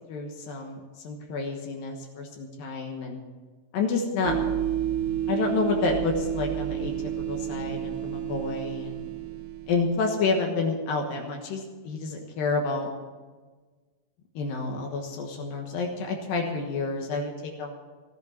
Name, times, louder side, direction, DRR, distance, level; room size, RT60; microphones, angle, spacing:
voice 1, 0.1-3.2 3.7-4.5 5.3-6.9 7.3-9.0 9.7-12.9 14.4-17.3 17.6-17.8, left 4 dB, 75° left, 2 dB, 3.0 m, -29 dB
sound 1, 4.3-10.1, right 11 dB, 75° right, 1.9 m, -30 dB
15.0 x 10.5 x 6.9 m, 1.4 s
omnidirectional pair, 4.2 m